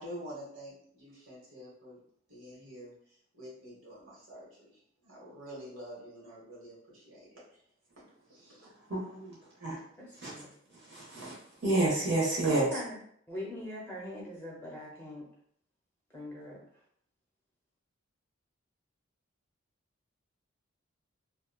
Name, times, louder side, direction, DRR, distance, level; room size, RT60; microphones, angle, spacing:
voice 1, 0.0-2.0 2.3-4.7 5.0-7.6 8.3-8.7, equal, 80° right, -6 dB, 1.3 m, -47 dB
voice 2, 8.9-9.4 9.6-9.8 10.2-10.3 10.9-11.3 11.6-12.7, right 2 dB, 55° right, -6 dB, 0.9 m, -29 dB
voice 3, 10.0-10.5 12.4-15.3 16.1-16.6, left 1 dB, 10° left, -4 dB, 0.7 m, -42 dB
2.8 x 2.2 x 2.3 m, 0.65 s
head